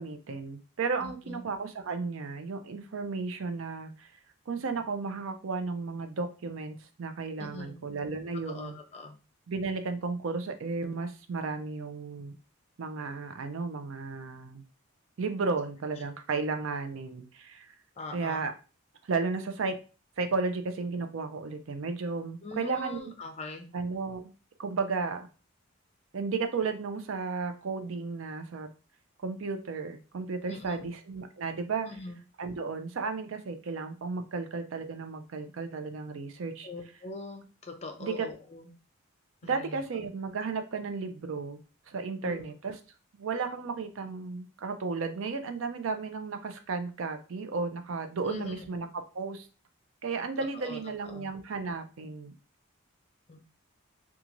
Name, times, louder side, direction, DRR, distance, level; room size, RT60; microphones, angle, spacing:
voice 1, 0.0-4.1 4.5-8.8 9.5-12.3 12.8-14.6 15.2-17.7 18.1-18.5 19.0-19.7 20.2-23.1 23.7-24.3 24.6-25.3 26.1-28.7 29.2-32.0 32.4-36.7 38.0-38.3 39.4-41.6 41.9-42.8 43.1-49.5 50.0-52.3, right 4 dB, 70° right, 8 dB, 0.5 m, -34 dB
voice 2, 1.0-1.4 7.4-7.8 8.5-9.2 18.0-18.5 22.4-23.7 30.5-30.9 31.8-32.2 36.6-38.7 39.4-39.8 42.2-42.5 48.2-48.7 50.4-51.3 53.3-53.4, left 3 dB, 30° left, 5 dB, 0.5 m, -42 dB
3.0 x 2.4 x 2.5 m, 0.35 s
head